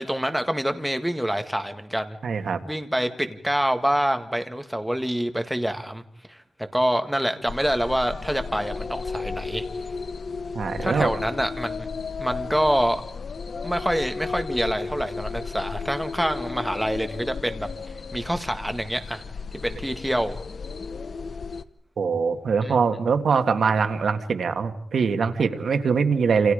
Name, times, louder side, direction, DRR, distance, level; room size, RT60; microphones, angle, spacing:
voice 1, 0.0-2.2 2.7-6.0 6.3-6.4 6.7-9.6 10.8-11.9 12.2-13.0 13.6-17.7 18.1-19.2 19.5-20.4 22.6-22.8, equal, ahead, 7 dB, 1.8 m, -26 dB
voice 2, 2.2-2.6 10.6-11.2 22.0-26.5, right 5 dB, 65° right, 7 dB, 1.8 m, -23 dB
sound 1, 7.5-21.6, left 4 dB, 50° left, 0.9 m, -34 dB
28.5 x 28.0 x 5.1 m, 0.70 s
wide cardioid pair, 155°, 0 cm